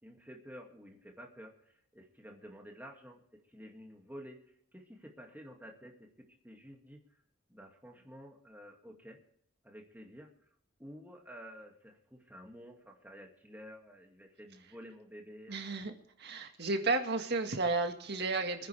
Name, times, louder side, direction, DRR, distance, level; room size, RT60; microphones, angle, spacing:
voice 1, 0.0-1.5 1.9-4.4 4.7-7.0 7.5-9.2 9.6-10.3 10.8-15.6, equal, 10° right, 1 dB, 2.4 m, -51 dB
voice 2, 15.5-18.7, right 3 dB, 50° right, 5 dB, 1.8 m, -32 dB
24.5 x 10.5 x 3.5 m, 0.69 s
head